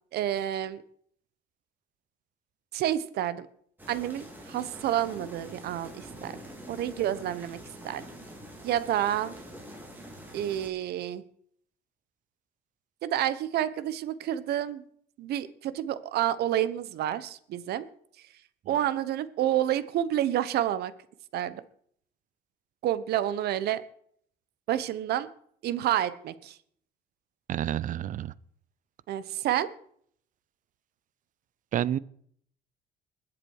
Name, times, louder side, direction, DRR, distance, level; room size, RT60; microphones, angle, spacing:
voice 1, 0.1-0.8 2.7-3.5 3.9-6.4 6.7-7.6 7.8-8.1 8.6-9.3 10.3-11.2 13.0-14.8 15.2-17.8 18.7-20.9 21.3-21.6 22.8-23.8 24.7-25.3 25.6-26.6 29.1-29.7, right 11 dB, 70° right, 15 dB, 1.0 m, -29 dB
sound 1, 3.8-10.7, equal, 10° right, 3.5 m, -45 dB
voice 2, 27.5-28.3 31.7-32.0, right 11 dB, 50° right, 21 dB, 0.6 m, -29 dB
21.0 x 7.6 x 4.8 m, 0.64 s
cardioid pair, 110°, 17 cm